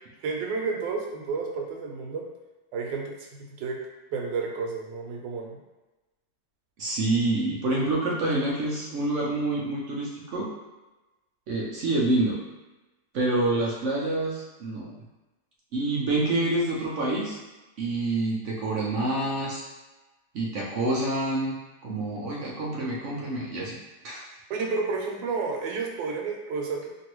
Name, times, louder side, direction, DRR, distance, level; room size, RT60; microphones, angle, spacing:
voice 1, 0.2-2.2 2.7-3.8 4.1-5.6 24.5-26.9, right 4 dB, 90° right, 1 dB, 1.3 m, -31 dB
voice 2, 6.8-10.5 11.5-12.4 13.1-14.9 15.7-17.4 17.8-19.6 20.3-21.6 21.8-23.8 24.0-24.2, right 2 dB, 65° right, -5 dB, 0.7 m, -27 dB
3.0 x 2.6 x 3.0 m, 1.1 s
omnidirectional pair, 1.9 m